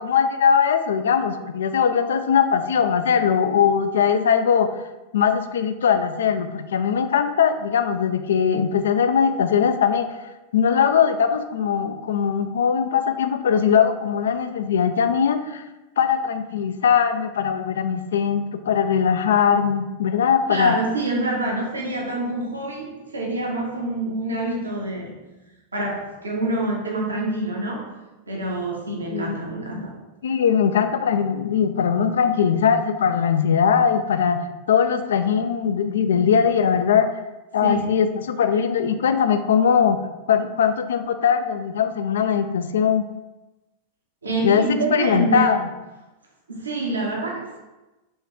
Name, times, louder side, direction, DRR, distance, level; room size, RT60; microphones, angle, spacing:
voice 1, 0.0-4.7 5.1-10.2 10.5-15.6 16.0-20.8 29.1-29.4 30.2-37.1 37.5-40.0 40.3-43.1 44.4-44.6 44.9-45.7, left 7 dB, 65° left, 9 dB, 0.3 m, -20 dB
voice 2, 20.5-25.2 25.7-27.9 28.3-29.9 37.6-37.9 44.2-45.5 46.5-47.6, right 2 dB, 75° right, -2 dB, 0.9 m, -26 dB
4.4 x 3.1 x 3.4 m, 1.1 s
figure-of-eight pair, 90°, 0 cm